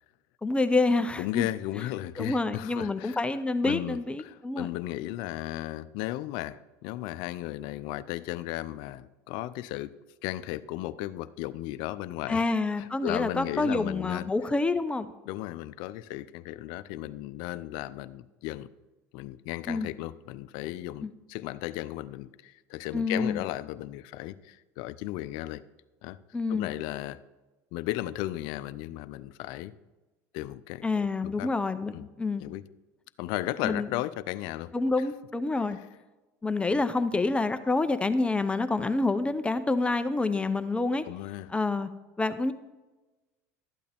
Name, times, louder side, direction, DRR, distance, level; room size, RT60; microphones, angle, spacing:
voice 1, 0.4-1.5 2.2-4.7 12.3-15.1 19.7-19.9 21.0-21.1 22.9-23.4 26.3-26.7 30.8-32.4 33.6-33.9 34.7-35.8 36.4-41.0 41.5-41.9 42.2-42.5, left 3 dB, 15° left, 10 dB, 0.6 m, -27 dB
voice 2, 1.2-3.2 3.6-9.9 10.2-14.3 15.3-18.7 19.1-25.6 26.0-26.2 26.5-27.2 27.7-29.7 30.3-31.5 31.9-32.1 32.4-32.6 33.2-34.7 36.7-36.8 41.1-41.5, left 15 dB, 65° left, 15 dB, 0.6 m, -35 dB
12.5 x 8.5 x 3.5 m, 1.1 s
supercardioid pair, 90°, 8 cm